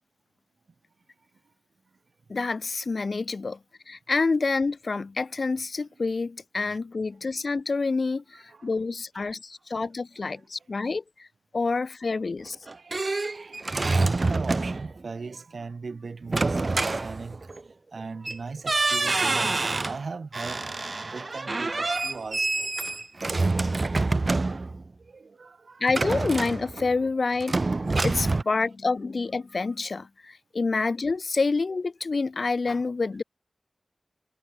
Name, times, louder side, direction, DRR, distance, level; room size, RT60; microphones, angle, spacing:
voice 1, 2.3-3.6 3.9-11.3 11.5-12.6 25.8-27.6 28.0-33.2, left 4 dB, 65° left, 1.0 m, -28 dB
voice 2, 8.3-8.7 9.1-9.2 12.7-13.0 13.3-20.6 21.0-22.7 24.5-24.7 25.0-25.8, right 4 dB, 80° right, 2.6 m, -39 dB
sound 1, 12.5-15.0 16.3-17.6 18.2-18.4 18.7-20.0 20.3-24.9 25.9-27.0 27.4-28.4, right 3 dB, 45° right, 0.5 m, -27 dB
wide cardioid pair, 90°, 0 cm